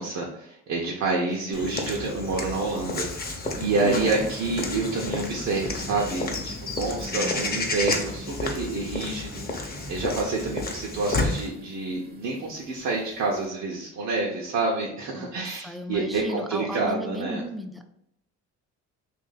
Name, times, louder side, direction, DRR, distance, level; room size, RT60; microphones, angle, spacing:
voice 1, 0.0-17.4, right 3 dB, 65° right, -3 dB, 0.8 m, -28 dB
voice 2, 1.2-1.6 3.8-4.3 7.1-7.4 15.1-17.8, equal, ahead, 6 dB, 0.3 m, -35 dB
Walk footsteps / Bird vocalization bird call bird song, 1.5-11.5, left 3 dB, 30° left, 0.7 m, -31 dB
sound 1, 3.4-13.5, right 1 dB, 30° right, 0.7 m, -43 dB
2.8 x 2.6 x 4.0 m, 0.77 s
cardioid pair, 90°, 30 cm